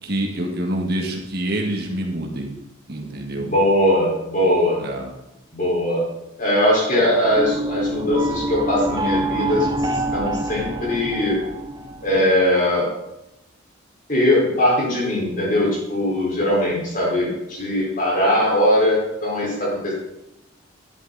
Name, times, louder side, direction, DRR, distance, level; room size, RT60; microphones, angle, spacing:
voice 1, 0.0-2.5 2.9-3.5 4.8-5.1, right 1 dB, 50° right, 0 dB, 1.9 m, -26 dB
voice 2, 3.3-4.8 5.5-6.0 6.4-9.7 10.1-11.4 12.0-12.9 14.1-19.9, left 1 dB, 40° left, -4 dB, 5.0 m, -20 dB
sound 1, 7.3-12.4, right 1 dB, 20° right, 0.8 m, -26 dB
12.0 x 11.0 x 4.2 m, 0.91 s
head